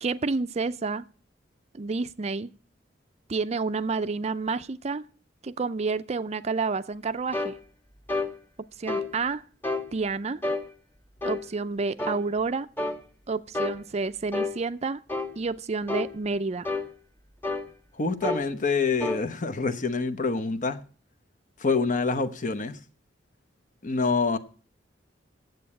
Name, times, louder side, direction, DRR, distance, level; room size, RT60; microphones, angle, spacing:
voice 1, 0.0-1.1 1.7-2.5 3.3-5.0 5.4-7.6 8.8-9.4 9.9-10.4 11.2-12.7 13.3-15.0 15.4-16.7, right 4 dB, 35° right, 0.5 m, -29 dB
sound 1, 7.3-7.6 8.1-8.3 8.9-9.1 9.6-9.9 10.4-10.6 11.2-11.4 12.0-12.2 12.8-13.0 13.5-13.8 14.3-14.6 15.1-15.3 15.9-16.1 16.6-16.9 17.4-17.7 18.2-18.5 19.0-19.2, left 2 dB, 10° left, 1.3 m, -29 dB
voice 2, 18.0-20.8 21.6-22.8 23.8-24.4, left 4 dB, 45° left, 0.9 m, -26 dB
9.2 x 7.9 x 8.5 m
head